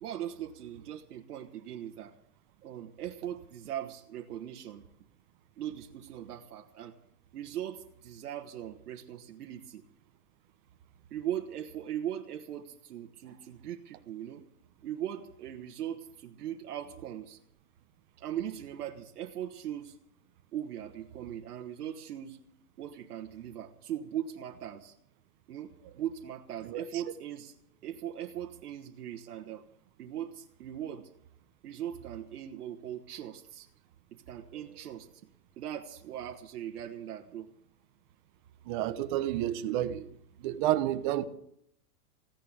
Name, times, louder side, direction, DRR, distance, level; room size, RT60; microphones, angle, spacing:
voice 1, 0.0-2.1 2.6-4.8 5.6-6.9 7.3-9.8 11.1-14.4 14.8-17.4 18.2-20.0 20.5-22.4 22.8-24.9 25.5-27.5 27.8-29.6 30.0-31.1 31.6-33.7 34.1-35.1 35.6-37.5, right 10 dB, 75° right, 3 dB, 1.5 m, -39 dB
voice 2, 26.6-27.0 38.6-40.1 40.4-41.2, right 13 dB, 30° right, 11 dB, 1.0 m, -30 dB
16.0 x 10.5 x 8.0 m, 0.72 s
supercardioid pair, 160°, 46 cm